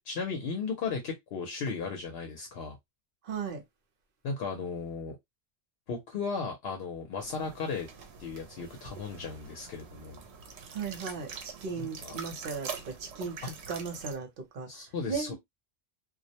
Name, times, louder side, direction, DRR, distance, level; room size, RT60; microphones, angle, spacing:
voice 1, 0.0-2.8 4.2-5.2 5.9-7.9 8.2-10.2 11.8-12.2 14.7-15.3, left 5 dB, 75° left, 0.8 m, -35 dB
voice 2, 3.2-3.6 10.7-14.7 15.1-15.3, right 5 dB, 60° right, 0.9 m, -36 dB
sound 1, 7.2-14.2, right 6 dB, 90° right, 0.9 m, -45 dB
2.3 x 2.0 x 2.7 m
omnidirectional pair, 1.1 m